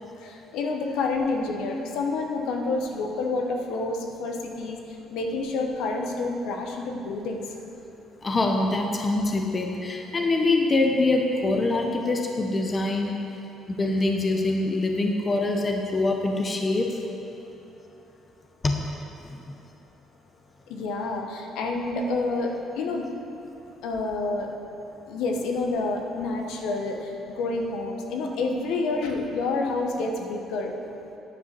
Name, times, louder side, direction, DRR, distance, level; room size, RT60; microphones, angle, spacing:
voice 1, 0.2-4.8 5.1-7.5 20.7-23.1 23.8-24.5 25.1-30.7, left 3 dB, 75° left, 2 dB, 1.0 m, -28 dB
voice 2, 8.2-13.1 13.7-16.9 18.6-18.9 19.3-19.4, left 2 dB, 20° left, 2 dB, 0.6 m, -24 dB
9.9 x 5.0 x 6.7 m, 2.9 s
cardioid pair, 160°, 0 cm